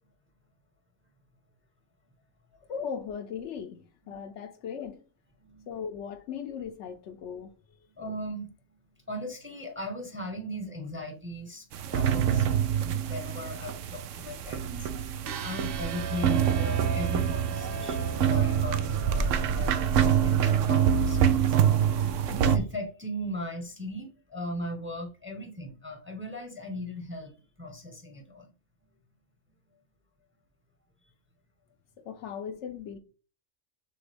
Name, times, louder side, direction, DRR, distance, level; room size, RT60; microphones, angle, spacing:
voice 1, 2.7-5.0 5.7-7.5 32.0-33.0, left 7 dB, 70° left, 0.9 m, -38 dB
voice 2, 5.4-5.7 8.0-8.5 9.1-11.7 11.9-21.6 22.3-28.5, equal, 10° right, 0.8 m, -38 dB
sound 1, 11.7-22.6, right 8 dB, 85° right, 0.9 m, -26 dB
sound 2, 15.2-21.3, right 7 dB, 60° right, 0.7 m, -36 dB
6.6 x 2.3 x 3.4 m
omnidirectional pair, 1.3 m